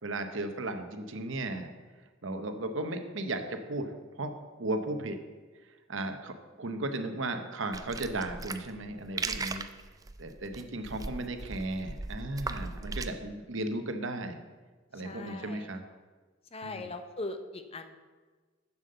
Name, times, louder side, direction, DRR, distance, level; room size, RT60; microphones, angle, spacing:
voice 1, 0.0-1.7 2.2-5.2 5.6-9.7 10.2-14.4 14.9-15.8 16.6-16.9, right 2 dB, 65° right, 7 dB, 0.9 m, -35 dB
sound 1, 7.7-13.1, right 3 dB, 15° right, 0.4 m, -38 dB
voice 2, 15.0-15.7 16.5-18.0, left 2 dB, 30° left, 8 dB, 0.6 m, -40 dB
7.5 x 7.3 x 6.6 m, 1.4 s
head